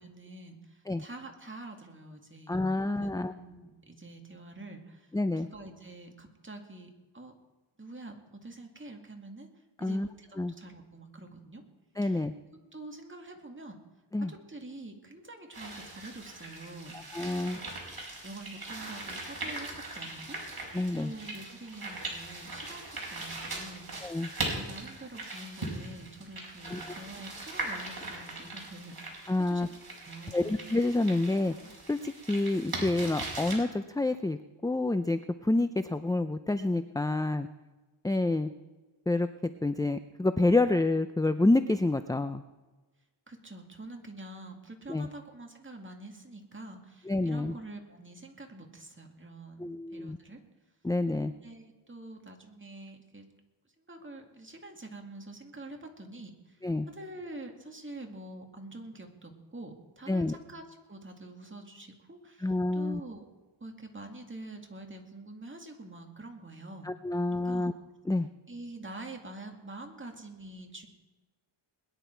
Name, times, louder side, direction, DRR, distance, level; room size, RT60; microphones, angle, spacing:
voice 1, 0.0-7.3 7.8-9.5 9.8-11.6 12.0-12.3 12.7-13.8 14.2-17.0 17.4-20.6 21.0-28.9 29.5-29.7 30.1-30.5 43.3-50.4 51.4-53.3 53.8-56.6 56.9-63.3 63.6-66.9 67.2-67.7 68.5-70.9, right 2 dB, 25° right, 3 dB, 2.2 m, -46 dB
voice 2, 2.5-3.3 5.1-5.5 9.8-10.1 10.4-10.5 12.0-12.3 14.1-14.3 16.9-17.6 20.7-21.1 24.0-24.3 26.7-26.8 29.3-29.7 30.3-37.5 38.0-38.5 39.1-39.3 39.6-42.4 44.9-45.1 47.1-47.6 49.6-50.2 50.8-51.3 56.6-56.9 60.1-60.4 62.4-63.0 66.8-67.7 68.1-68.3, left 2 dB, 10° left, 10 dB, 0.5 m, -28 dB
sound 1, 15.5-33.5, right 2 dB, 45° right, 4.5 m, -40 dB
21.5 x 10.5 x 4.6 m, 1.2 s
wide cardioid pair, 75°, 49 cm